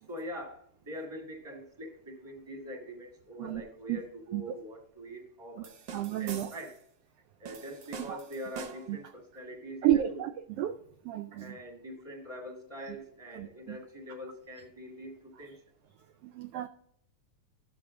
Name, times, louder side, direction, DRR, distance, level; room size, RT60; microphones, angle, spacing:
voice 1, 0.1-6.8 7.4-10.2 11.3-15.6, equal, 10° right, 1 dB, 1.4 m, -44 dB
sound 1, 5.6-6.8 7.4-9.0, right 5 dB, 65° right, 1.2 m, -44 dB
voice 2, 5.9-6.5 8.1-8.2 8.9-9.0 9.8-10.3 10.6-10.8 11.0-11.6 12.9-13.0 13.3-13.8 16.2-16.7, right 12 dB, 85° right, 7 dB, 1.3 m, -31 dB
13.0 x 7.2 x 3.7 m, 0.69 s
omnidirectional pair, 3.3 m